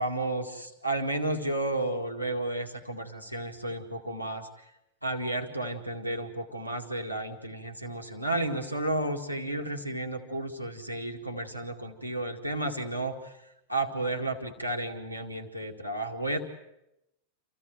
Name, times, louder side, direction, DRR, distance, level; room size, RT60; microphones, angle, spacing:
voice 1, 0.0-4.5 5.0-13.3 13.7-16.4, right 2 dB, 90° left, 4 dB, 2.1 m, -32 dB
27.0 x 16.0 x 9.2 m, 0.87 s
figure-of-eight pair, 90°, 0 cm